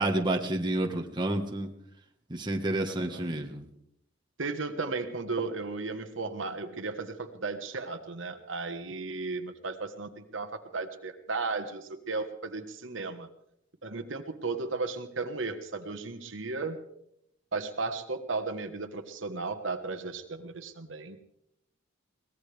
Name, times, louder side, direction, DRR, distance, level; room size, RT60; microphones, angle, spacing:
voice 1, 0.0-1.7 2.3-3.6, right 2 dB, 25° right, 2 dB, 1.5 m, -29 dB
voice 2, 2.9-3.3 4.4-13.3 13.8-16.8 17.5-21.2, right 3 dB, 80° right, 7 dB, 1.4 m, -35 dB
22.5 x 18.5 x 3.4 m, 0.76 s
head